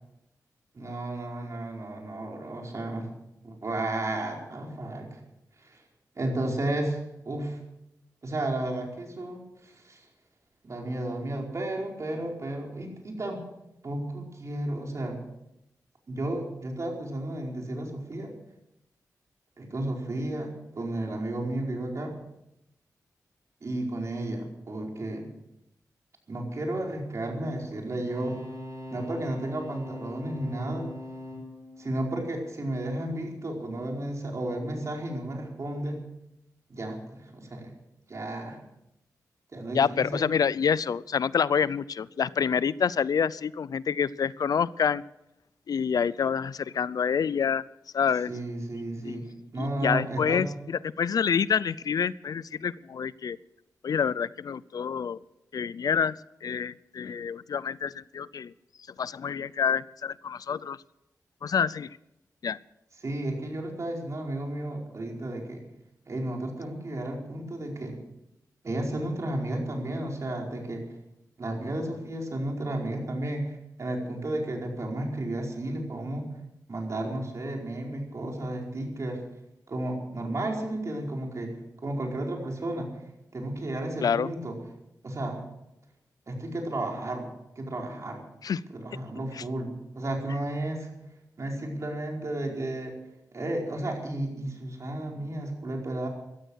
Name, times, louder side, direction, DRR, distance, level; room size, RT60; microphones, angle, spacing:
voice 1, 0.7-3.1 3.4-5.2 5.6-5.8 6.2-7.6 8.2-10.1 10.6-13.4 13.8-15.2 16.1-18.3 19.6-22.2 23.6-25.3 26.3-28.3 28.9-30.9 31.8-36.0 36.7-37.7 38.1-38.6 39.5-40.2 48.3-49.2 49.5-50.5 63.0-65.6 66.1-67.9 68.6-70.8 71.4-76.3 76.7-79.2 79.7-81.5 81.8-82.9 83.3-84.5 85.0-85.4 86.3-88.2 88.7-90.9 91.4-92.9 93.3-96.1, right 1 dB, 50° right, 0 dB, 4.8 m, -33 dB
sound 1, 28.0-33.0 35.8-35.9, left 1 dB, 70° right, 5.7 m, -42 dB
voice 2, 39.7-45.0 45.7-47.6 47.9-48.3 49.0-49.3 49.6-53.4 53.8-55.2 55.5-56.1 56.4-58.5 59.0-60.8 61.4-62.0 62.4-62.6 84.0-84.3 88.4-88.6 89.3-89.4, left 7 dB, 75° left, 19 dB, 0.5 m, -27 dB
16.0 x 13.5 x 6.4 m, 0.86 s
cardioid pair, 75°, 6 cm